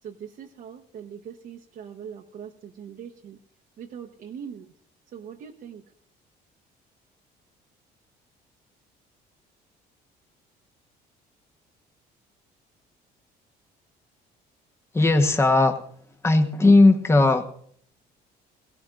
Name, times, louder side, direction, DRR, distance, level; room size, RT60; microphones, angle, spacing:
voice 1, 0.0-3.4 3.8-4.7 5.1-5.8, right 8 dB, 60° right, 0 dB, 1.0 m, -41 dB
voice 2, 14.9-15.8 16.2-17.4, left 2 dB, 15° left, 5 dB, 1.2 m, -17 dB
17.5 x 17.0 x 2.5 m, 0.64 s
cardioid pair, 110°, 17 cm